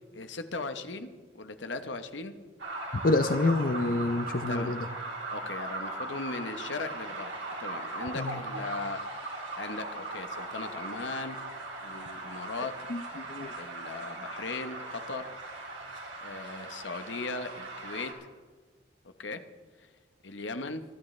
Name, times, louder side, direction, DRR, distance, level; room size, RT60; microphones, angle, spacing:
voice 1, 0.1-1.1 1.3-2.3 4.5-4.7 5.3-7.3 7.6-9.0 9.6-11.4 11.8-12.8 13.6-15.3 16.2-18.1 19.2-19.4 20.2-20.8, left 3 dB, 85° left, 9 dB, 1.0 m, -38 dB
sound 1, 2.6-18.1, right 2 dB, 85° right, 3.3 m, -39 dB
voice 2, 3.0-4.9 8.1-8.4 12.9-13.5, left 2 dB, 50° left, 9 dB, 0.6 m, -27 dB
24.0 x 11.5 x 3.3 m, 1.4 s
head